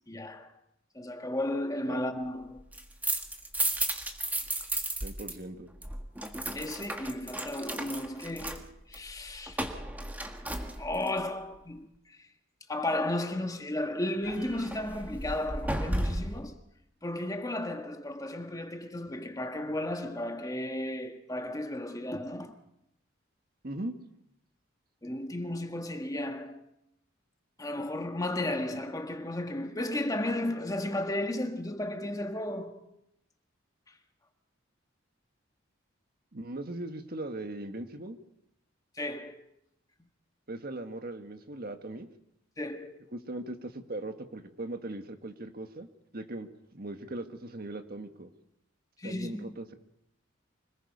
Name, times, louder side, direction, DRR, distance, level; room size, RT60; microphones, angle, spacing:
voice 1, 0.1-0.5 0.9-2.6 6.5-8.6 8.9-9.6 10.8-12.2 12.7-16.6 17.0-22.5 25.0-26.6 27.6-32.9 39.0-39.4 42.6-43.0 49.0-49.5, left 1 dB, 20° left, 1.6 m, -34 dB
sound 1, 2.6-5.3 5.6-11.2 14.2-16.5, right 1 dB, 10° right, 1.6 m, -34 dB
voice 2, 5.0-5.7 23.6-23.9 36.3-38.2 40.5-42.1 43.1-45.9 46.1-48.3 49.0-49.8, right 2 dB, 50° right, 1.6 m, -39 dB
25.5 x 20.0 x 5.4 m
head